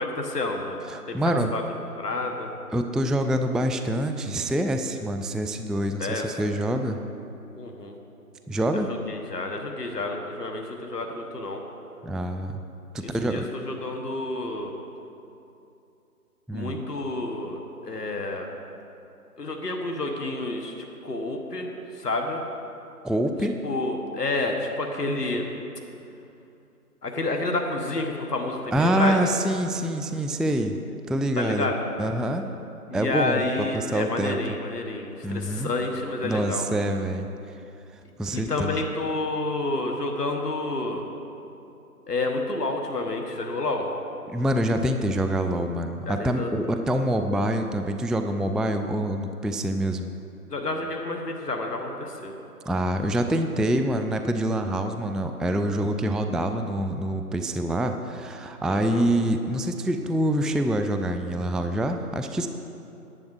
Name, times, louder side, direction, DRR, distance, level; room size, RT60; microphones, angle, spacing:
voice 1, 0.0-0.8 1.1-1.2 1.5-1.6 2.0-2.5 6.0-6.2 7.6-7.9 8.9-11.6 13.0-14.7 16.5-17.6 17.8-18.5 19.4-20.7 21.0-21.7 22.0-22.4 23.6-25.5 27.0-29.2 31.4-31.8 32.9-36.6 38.3-41.0 42.1-43.9 46.1-46.5 50.5-52.3 58.7-59.0, left 2 dB, 80° left, 2 dB, 1.4 m, -29 dB
voice 2, 0.8-1.5 2.7-7.0 8.5-8.9 12.0-12.6 12.9-13.5 16.5-16.8 23.0-23.6 28.7-30.8 31.1-31.7 32.0-32.5 32.9-33.5 33.7-34.4 35.2-35.7 36.2-37.3 38.2-38.8 44.3-50.1 52.7-62.5, right 1 dB, ahead, 7 dB, 0.3 m, -26 dB
10.5 x 8.9 x 4.7 m, 2.7 s
figure-of-eight pair, 175°, 47 cm